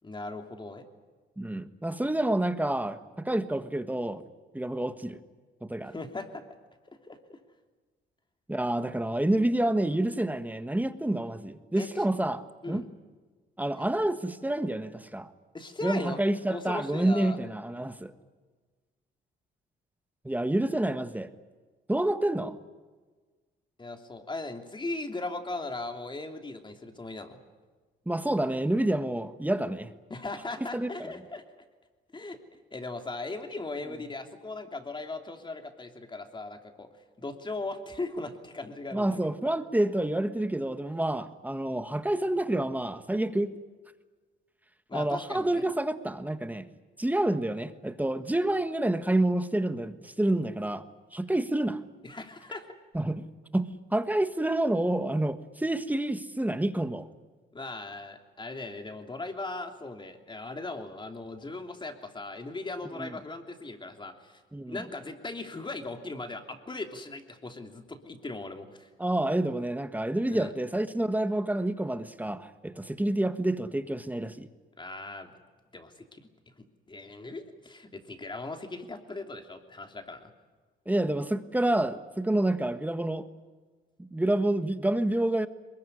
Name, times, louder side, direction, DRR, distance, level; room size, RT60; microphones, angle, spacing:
voice 1, 0.0-0.9 5.9-6.4 6.9-7.4 11.8-11.9 12.6-12.8 13.7-13.8 15.5-16.2 16.5-17.4 23.8-27.4 30.1-31.4 32.1-32.4 32.7-36.9 37.2-39.2 44.9-45.6 52.0-52.7 57.5-64.4 64.7-68.9 70.3-70.5 74.8-75.3 75.7-76.3 76.9-80.3, left 2 dB, 25° left, 5 dB, 3.1 m, -38 dB
voice 2, 1.4-4.2 4.5-5.2 5.6-6.0 8.5-12.8 13.6-15.3 15.8-18.1 20.2-21.3 21.9-22.6 28.1-29.9 30.7-31.1 38.9-43.5 44.9-46.7 47.0-50.8 51.1-51.8 52.9-53.2 53.5-57.1 63.0-63.1 64.5-64.8 69.0-74.5 80.9-83.3 84.0-85.5, right 1 dB, 10° right, 10 dB, 1.4 m, -28 dB
22.5 x 21.5 x 9.9 m, 1.4 s
cardioid pair, 90°, 20 cm